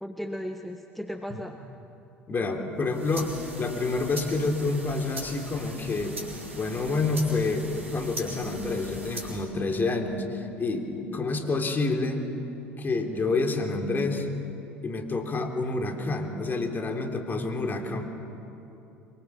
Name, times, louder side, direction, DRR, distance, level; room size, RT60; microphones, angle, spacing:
voice 1, 0.0-1.6, equal, ahead, 5 dB, 1.3 m, -36 dB
voice 2, 2.3-3.3 3.6-6.2 6.5-12.3 12.8-14.3 14.8-18.0, left 3 dB, 30° left, 3 dB, 3.5 m, -28 dB
sound 1, 2.8-9.5, right 1 dB, 85° right, 3.3 m, -40 dB
24.5 x 22.5 x 7.3 m, 2.8 s
figure-of-eight pair, 60°, 7 cm